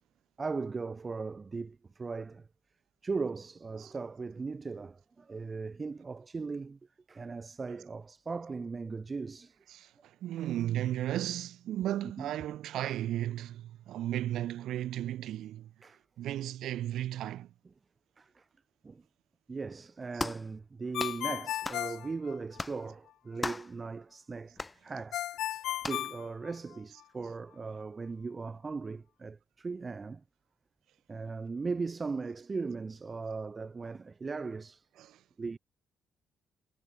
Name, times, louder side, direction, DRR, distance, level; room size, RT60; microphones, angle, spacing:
voice 1, 0.4-2.5 3.0-6.8 7.1-9.6 12.2-12.3 15.8-16.0 18.2-18.4 18.8-19.0 19.5-25.5 25.9-30.2 31.1-34.9 35.4-35.6, right 4 dB, 30° right, 0.9 m, -38 dB
voice 2, 9.7-15.7 16.2-17.5 35.0-35.2, right 12 dB, 80° right, 0.7 m, -35 dB
sound 1, 20.2-20.5 21.0-21.2 21.6-21.9 22.6-22.8 23.4-23.7 24.6-24.8 25.8-26.1, left 2 dB, 15° left, 0.5 m, -37 dB
Ringtone, 20.9-22.9 25.1-27.0, left 13 dB, 80° left, 0.9 m, -35 dB
cardioid pair, 90°, 0 cm